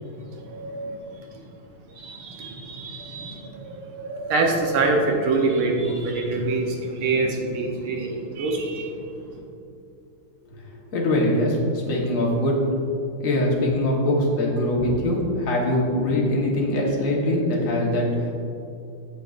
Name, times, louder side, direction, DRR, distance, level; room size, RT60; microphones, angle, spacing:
voice 1, 0.0-1.5 1.9-9.4, right 3 dB, 80° right, 1 dB, 1.8 m, -26 dB
voice 2, 10.9-12.6 13.2-18.1, left 1 dB, 45° left, -3 dB, 1.4 m, -22 dB
9.0 x 6.9 x 2.5 m, 2.7 s
omnidirectional pair, 2.3 m